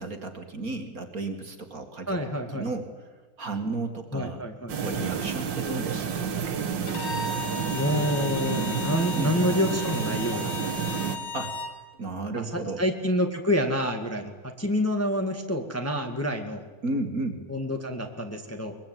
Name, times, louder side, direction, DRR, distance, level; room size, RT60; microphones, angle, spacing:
voice 1, 0.0-2.2 2.5-2.9 3.4-4.4 4.8-6.4 9.1-9.3 11.3-11.6 12.0-12.8 16.8-17.4, right 2 dB, 45° right, 6 dB, 2.4 m, -33 dB
voice 2, 2.1-2.7 4.1-4.7 7.7-10.6 12.3-16.6 17.5-18.7, left 1 dB, 5° left, 4 dB, 1.8 m, -28 dB
sound 1, 4.7-11.2, right 7 dB, 60° right, 2.1 m, -30 dB
Bowed string instrument, 6.9-11.8, left 4 dB, 80° left, 3.2 m, -36 dB
22.5 x 21.5 x 9.3 m, 1.3 s
omnidirectional pair, 2.3 m